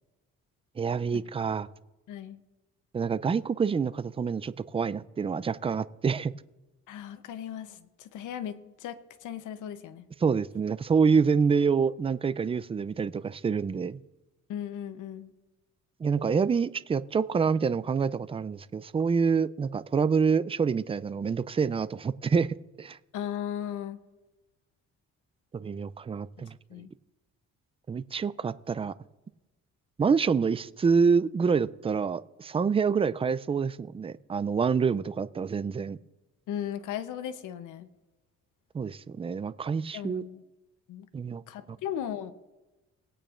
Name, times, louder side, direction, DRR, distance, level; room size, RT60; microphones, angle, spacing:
voice 1, 0.8-1.7 2.9-6.3 10.2-14.0 16.0-23.0 25.5-26.6 27.9-28.9 30.0-36.0 38.7-40.2 41.1-41.4, right 5 dB, 20° right, 16 dB, 0.4 m, -27 dB
voice 2, 2.1-2.4 6.9-10.1 14.5-15.3 23.1-24.0 26.7-26.9 36.5-37.9 39.9-40.4 40.9-41.1 41.5-42.3, left 10 dB, 80° left, 11 dB, 0.8 m, -37 dB
20.0 x 8.7 x 2.5 m, 1.1 s
cardioid pair, 90°, 30 cm